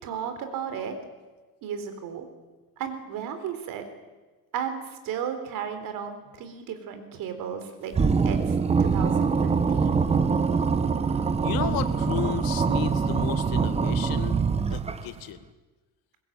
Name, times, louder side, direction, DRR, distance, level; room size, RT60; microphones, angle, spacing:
voice 1, 0.0-0.9 1.6-2.3 2.8-3.8 4.5-4.8 5.0-7.9 8.2-10.0, right 8 dB, 70° right, 8 dB, 4.0 m, -34 dB
sound 1, 7.9-15.2, right 5 dB, 20° right, 0.9 m, -24 dB
voice 2, 11.4-14.4 14.7-15.4, left 12 dB, 85° left, 11 dB, 1.8 m, -33 dB
23.0 x 20.5 x 9.0 m, 1.3 s
cardioid pair, 180°, 34 cm